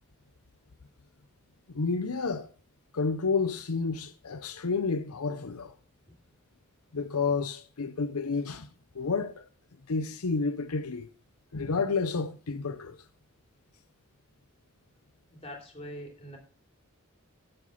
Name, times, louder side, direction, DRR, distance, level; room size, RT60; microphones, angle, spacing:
voice 1, 1.7-2.5 2.9-5.7 6.9-8.7 8.9-9.4 9.9-11.1 11.5-13.0, left 4 dB, 90° left, 0.8 m, -30 dB
voice 2, 15.4-16.4, equal, 25° left, 3.2 m, -42 dB
9.8 x 7.8 x 5.7 m
head